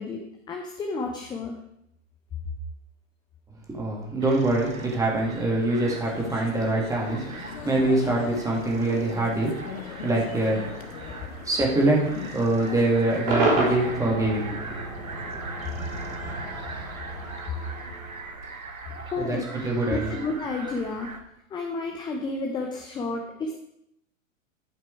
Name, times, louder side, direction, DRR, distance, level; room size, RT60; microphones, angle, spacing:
voice 1, 0.0-1.6 19.1-19.5 19.9-21.1 21.5-23.5, left 3 dB, 10° left, 2 dB, 0.7 m, -31 dB
voice 2, 3.7-10.7 11.4-14.8 19.2-19.4 19.6-20.1, right 2 dB, 10° right, -2 dB, 2.2 m, -24 dB
sound 1, 4.2-21.2, right 3 dB, 80° right, 1.3 m, -41 dB
sound 2, 5.8-13.8, left 7 dB, 45° left, 1.0 m, -40 dB
Cheering / Crowd / Fireworks, 13.3-18.5, right 2 dB, 45° right, 4.0 m, -30 dB
11.5 x 6.0 x 4.7 m, 0.79 s
figure-of-eight pair, 100°, 41 cm